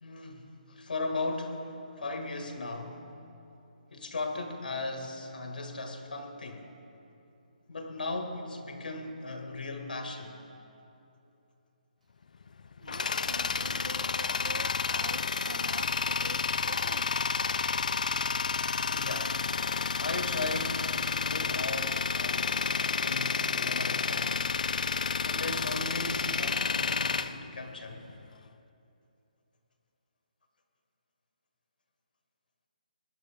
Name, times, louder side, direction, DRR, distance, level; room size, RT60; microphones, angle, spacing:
voice 1, 0.0-3.1 3.9-6.7 7.7-10.4 18.9-19.4 20.0-24.4 25.2-28.1, left 2 dB, 85° left, 4 dB, 1.6 m, -37 dB
Tools, 12.4-28.2, left 5 dB, 65° left, 0.4 m, -30 dB
voice 2, 12.8-17.3, right 4 dB, 55° right, 11 dB, 0.6 m, -46 dB
19.0 x 10.5 x 3.4 m, 2.9 s
hypercardioid pair, 175°, 5 cm